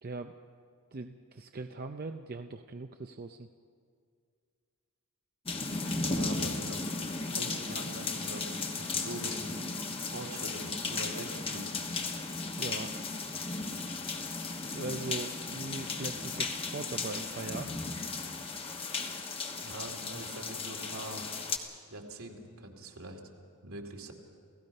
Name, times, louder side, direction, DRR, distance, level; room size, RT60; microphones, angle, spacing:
voice 1, 0.0-0.3 0.9-3.5 12.5-13.0 14.7-17.7, right 3 dB, 40° right, 6 dB, 0.5 m, -40 dB
sound 1, 5.5-21.6, left 3 dB, 25° left, 1.2 m, -35 dB
voice 2, 6.0-6.8 7.4-9.7 10.0-11.8 12.1-12.3 19.6-21.3 21.9-23.2 23.6-24.1, right 1 dB, 75° right, 2 dB, 2.4 m, -43 dB
29.0 x 17.0 x 5.4 m, 2.2 s
head